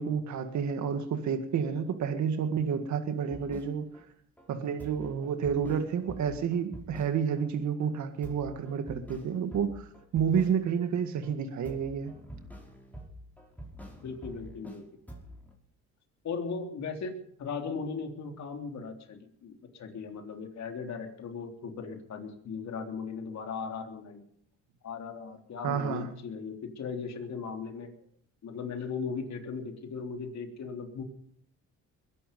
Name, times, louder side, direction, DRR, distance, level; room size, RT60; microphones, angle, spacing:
voice 1, 0.0-3.9 4.5-9.9 10.1-12.1 25.6-26.1, right 7 dB, 70° right, 7 dB, 1.9 m, -30 dB
sound 1, 3.3-4.0 4.4-4.5 4.8-7.5 7.8-7.9 8.2-10.9 11.2-14.8 15.1-15.5, equal, 5° left, 5.0 m, -47 dB
voice 2, 14.0-14.8 16.2-24.2 24.8-27.9 28.4-31.0, left 5 dB, 65° left, 3 dB, 3.5 m, -38 dB
22.0 x 11.0 x 5.4 m, 0.65 s
cardioid pair, 90°, 30 cm